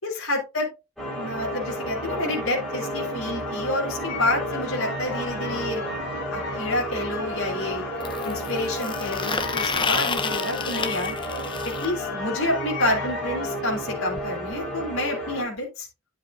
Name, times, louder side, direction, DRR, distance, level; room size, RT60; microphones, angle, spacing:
voice 1, 0.0-0.7 1.1-5.8 6.3-7.8 8.2-11.2 11.6-15.9, left 1 dB, 70° left, -4 dB, 3.6 m, -28 dB
sound 1, 1.0-15.4, equal, ahead, 5.0 m, -32 dB
sound 2, 4.0-13.6, left 4 dB, 50° left, 1.8 m, -36 dB
sound 3, 6.0-6.1 8.0-11.9 13.8-13.9 14.2-14.3 14.5-14.7 15.6-15.7, left 5 dB, 20° left, 0.8 m, -30 dB
11.0 x 7.2 x 2.7 m, 0.28 s
head